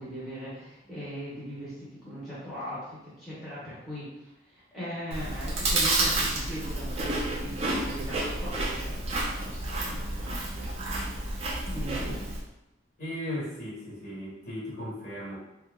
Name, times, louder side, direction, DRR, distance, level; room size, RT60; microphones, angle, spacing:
voice 1, 0.0-12.2, equal, ahead, -11 dB, 0.8 m, -40 dB
Chewing mastication, 5.1-12.4, right 2 dB, 30° right, 0.5 m, -30 dB
voice 2, 13.0-15.4, left 1 dB, 40° left, -7 dB, 1.4 m, -36 dB
2.8 x 2.2 x 3.5 m, 0.91 s
head